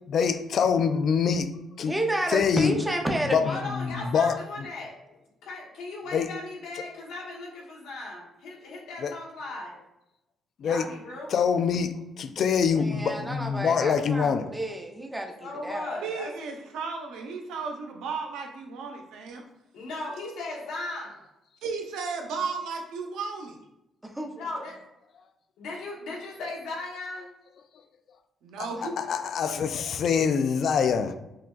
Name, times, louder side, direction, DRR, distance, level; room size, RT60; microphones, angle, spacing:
voice 1, 0.1-1.5 1.8-2.0 2.3-2.8 3.3-4.4 6.1-6.3 9.0-9.1 10.6-10.9 11.3-14.5 28.8-31.1, left 6 dB, 65° left, 0.3 m, -25 dB
voice 2, 1.8-3.6 12.7-15.9 24.2-24.3 28.8-28.9, right 1 dB, 10° right, 0.7 m, -31 dB
voice 3, 3.4-5.0 5.4-9.8 10.6-11.8 15.4-16.3 19.7-21.2 24.4-24.7 25.6-27.3, left 2 dB, 85° left, 1.1 m, -37 dB
voice 4, 16.0-19.4 21.6-23.6 28.4-29.0, right 5 dB, 85° right, 0.6 m, -34 dB
5.8 x 2.2 x 2.4 m
cardioid pair, 90°, 0 cm